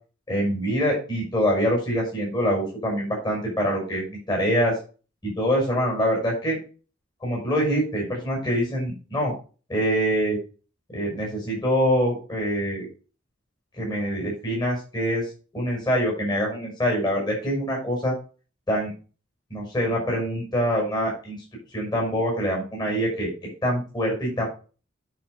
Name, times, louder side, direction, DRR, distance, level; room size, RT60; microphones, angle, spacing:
voice 1, 0.3-4.8 5.2-6.6 7.2-9.3 9.7-10.4 10.9-12.9 13.8-18.1 18.7-18.9 19.5-21.4 21.7-23.3 23.6-24.5, equal, 20° left, -2 dB, 6.2 m, -25 dB
10.0 x 6.1 x 5.4 m, 0.35 s
head